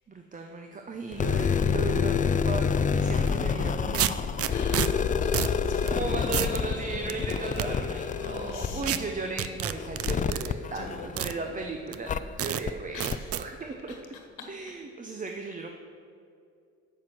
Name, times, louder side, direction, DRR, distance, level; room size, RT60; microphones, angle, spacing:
voice 1, 0.1-4.7 5.9-12.1 12.4-13.1 13.3-14.0 14.5-15.8, right 3 dB, 25° right, 3 dB, 0.8 m, -36 dB
sound 1, 1.1-11.5 12.1-12.2 12.7-12.8 13.1-13.2, left 6 dB, 25° left, 0.4 m, -28 dB
sound 2, 3.2-3.3 3.9-4.9 5.3-5.6 5.9-6.0 6.3-6.6 7.1-7.7 8.8-9.0 9.4-10.5 11.2-11.3 11.9-12.0 12.4-12.6 13.0-13.4, right 11 dB, 50° right, 0.5 m, -29 dB
sound 3, 4.3-10.3, left 1 dB, 10° left, 2.3 m, -50 dB
voice 2, 4.4-5.9 8.2-9.9 10.7-11.6 12.9-14.0 14.4-14.5, left 5 dB, 90° left, 2 dB, 1.5 m, -44 dB
7.9 x 7.5 x 6.1 m, 2.5 s
cardioid pair, 90°, 30 cm